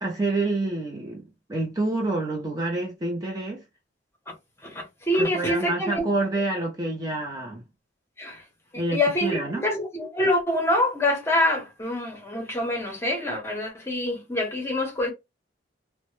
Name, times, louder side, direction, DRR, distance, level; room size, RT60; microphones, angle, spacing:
voice 1, 0.0-3.6 5.2-7.6 8.8-9.7, right 2 dB, 20° right, 0.5 m, -28 dB
voice 2, 4.6-6.1 8.2-8.4 8.9-15.1, left 1 dB, 15° left, 0.7 m, -26 dB
2.1 x 2.1 x 2.9 m
head